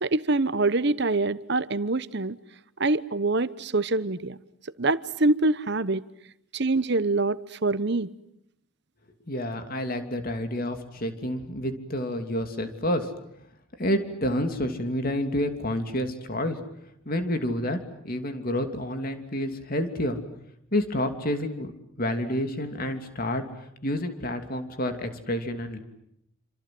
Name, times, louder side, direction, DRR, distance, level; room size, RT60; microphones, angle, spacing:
voice 1, 0.0-2.4 2.8-4.4 4.8-6.0 6.5-8.1, right 2 dB, 55° right, 15 dB, 1.0 m, -25 dB
voice 2, 9.3-13.1 13.8-16.6 17.0-17.8 18.0-20.2 20.7-21.7 22.0-23.4 23.8-25.8, left 1 dB, 45° left, 7 dB, 2.9 m, -29 dB
28.0 x 27.0 x 7.8 m, 0.77 s
head